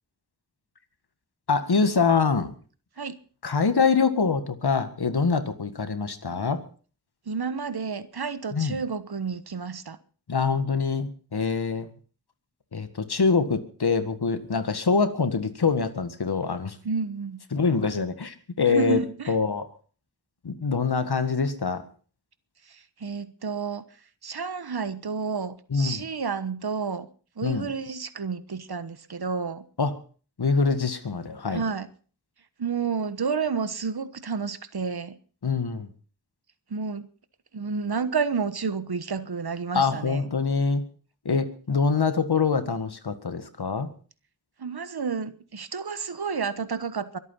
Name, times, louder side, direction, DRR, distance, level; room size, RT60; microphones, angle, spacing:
voice 1, 1.5-2.5 3.4-6.6 8.5-8.8 10.3-11.9 12.7-16.8 17.5-19.0 19.3-19.7 20.4-21.8 25.7-26.0 27.4-27.7 29.8-30.0 30.4-31.6 35.4-35.9 39.7-40.8 41.3-43.9, left 5 dB, 75° left, 1.9 m, -24 dB
voice 2, 7.3-10.0 16.8-17.4 18.7-19.3 22.7-23.9 24.2-27.1 27.4-29.7 31.5-31.9 32.6-35.2 36.7-37.1 37.5-40.3 41.7-41.8 44.6-47.2, right 5 dB, 70° right, 1.3 m, -30 dB
23.5 x 8.7 x 5.5 m
wide cardioid pair, 50°, 40 cm